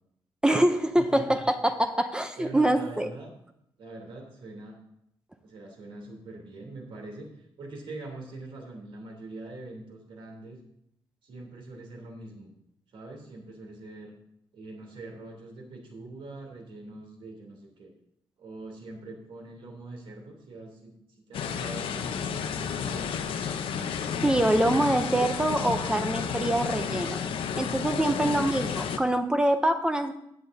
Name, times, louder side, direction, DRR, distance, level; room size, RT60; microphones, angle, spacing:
voice 1, 0.4-3.1 24.2-27.2 27.6-30.1, right 1 dB, 10° right, 7 dB, 0.6 m, -25 dB
voice 2, 1.0-1.4 2.4-3.3 3.8-4.8 5.4-10.6 11.2-12.5 12.9-14.1 14.5-17.9 18.4-23.5 27.8-28.6, right 2 dB, 70° right, 1 dB, 3.2 m, -43 dB
sound 1, 21.3-29.0, left 7 dB, 75° left, 0.9 m, -31 dB
15.5 x 9.0 x 2.7 m, 0.76 s
wide cardioid pair, 160°, 9 cm